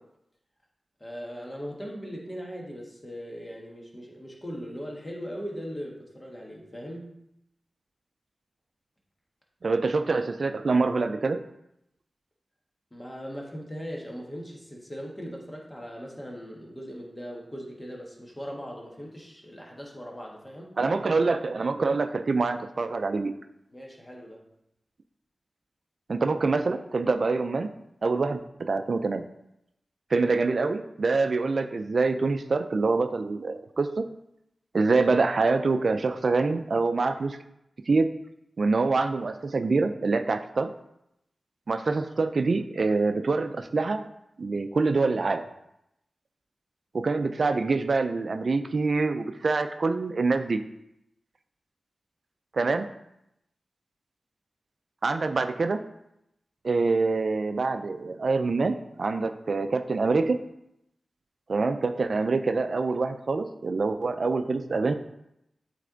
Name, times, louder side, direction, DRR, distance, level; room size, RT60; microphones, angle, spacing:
voice 1, 1.0-7.2 12.9-20.7 23.7-24.4, equal, 25° left, -1 dB, 1.6 m, -39 dB
voice 2, 9.6-11.4 20.8-23.3 26.1-27.7 28.0-29.3 30.1-34.0 34.7-37.4 37.9-38.1 38.6-40.7 41.7-44.1 44.4-45.4 46.9-50.6 52.5-52.9 55.0-55.8 56.6-60.4 61.5-64.9, right 3 dB, 65° right, 8 dB, 0.4 m, -25 dB
8.3 x 3.3 x 3.9 m, 0.82 s
cardioid pair, 55°, 0 cm